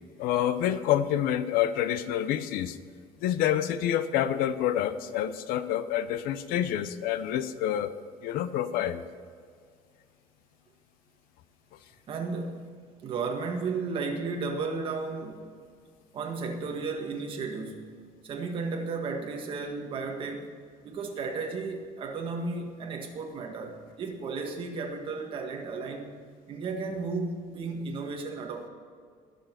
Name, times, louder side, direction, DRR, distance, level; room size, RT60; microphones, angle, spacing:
voice 1, 0.2-2.8 3.2-7.9 8.2-9.0, left 11 dB, 75° left, 12 dB, 0.8 m, -27 dB
voice 2, 12.1-15.5 16.1-17.9 18.2-20.5 20.8-26.1 26.5-28.7, right 4 dB, 35° right, 2 dB, 1.7 m, -34 dB
20.5 x 7.4 x 6.0 m, 2.1 s
cardioid pair, 180°, 15 cm